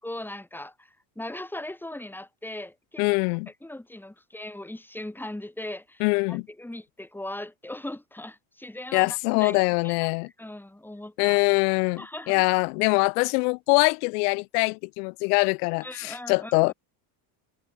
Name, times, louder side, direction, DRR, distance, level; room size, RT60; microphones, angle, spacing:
voice 1, 0.0-3.1 3.5-9.6 9.8-10.1 10.4-11.4 12.0-12.4 15.8-16.7, left 1 dB, 5° left, 7.0 m, -39 dB
voice 2, 3.0-3.5 6.0-6.4 8.9-10.3 11.2-16.7, left 31 dB, 85° left, 1.4 m, -23 dB
cardioid pair, 130°, 45 cm